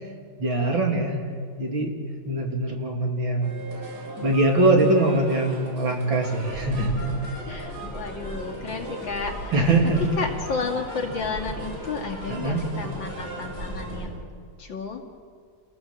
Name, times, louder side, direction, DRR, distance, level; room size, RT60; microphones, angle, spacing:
voice 1, 0.4-1.2 1.6-1.9 2.3-3.6 4.2-7.0 9.5-10.0 12.3-12.6, right 2 dB, 85° right, 0 dB, 4.0 m, -22 dB
sound 1, 3.4-14.0, right 1 dB, 65° right, 5.7 m, -39 dB
sound 2, 6.3-14.1, right 1 dB, 5° right, 7.4 m, -38 dB
voice 2, 7.4-9.5 10.2-15.0, left 4 dB, 80° left, 1 dB, 3.1 m, -32 dB
28.5 x 18.0 x 7.5 m, 2.1 s
omnidirectional pair, 2.0 m